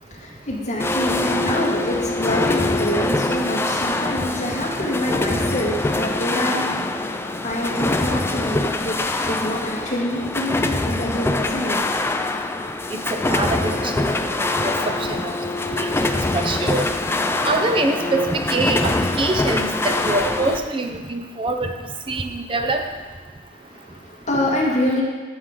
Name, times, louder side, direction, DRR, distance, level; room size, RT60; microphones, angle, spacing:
voice 1, 0.0-12.1 23.5-25.0, left 1 dB, 45° left, -4 dB, 1.8 m, -26 dB
sound 1, 0.8-20.6, left 2 dB, 15° left, 0.4 m, -24 dB
voice 2, 12.9-14.1 14.4-15.3 15.7-16.9 17.4-21.7 22.1-22.8, right 2 dB, 30° right, 5 dB, 0.7 m, -24 dB
13.5 x 4.9 x 3.8 m, 1.4 s
head